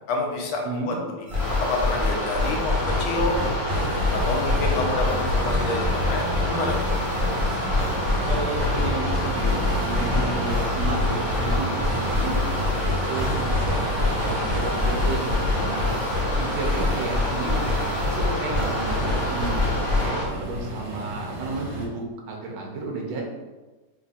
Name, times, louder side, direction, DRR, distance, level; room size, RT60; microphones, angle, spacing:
voice 1, 0.1-0.9 1.7-3.3 4.1-6.8, left 3 dB, 85° left, 0 dB, 1.6 m, -28 dB
sound 1, 1.3-20.1, left 2 dB, 15° right, 1.0 m, -26 dB
sound 2, 1.4-20.2, left 1 dB, 60° left, 2.2 m, -29 dB
sound 3, 3.7-21.9, right 2 dB, 70° right, 1.5 m, -32 dB
voice 2, 7.6-8.0 8.2-16.0 16.4-23.2, right 3 dB, 85° right, 0 dB, 1.5 m, -33 dB
4.1 x 2.4 x 4.0 m, 1.2 s
omnidirectional pair, 2.2 m